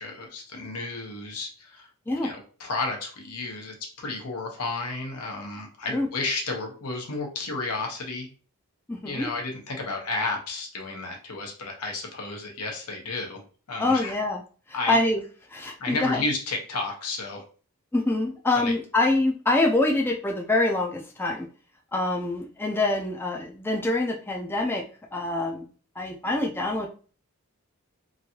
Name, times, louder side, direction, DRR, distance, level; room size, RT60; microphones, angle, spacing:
voice 1, 0.0-1.9 2.2-8.3 9.0-13.4 13.7-14.1 14.7-15.0 15.8-17.4 18.5-18.7, left 3 dB, 85° left, 1 dB, 0.9 m, -32 dB
voice 2, 8.9-9.3 13.8-14.4 14.7-15.2 15.5-16.2 17.9-21.5 21.9-24.8 25.1-25.7 26.0-26.9, left 2 dB, 10° left, 0 dB, 0.4 m, -25 dB
3.0 x 2.6 x 2.8 m, 0.39 s
head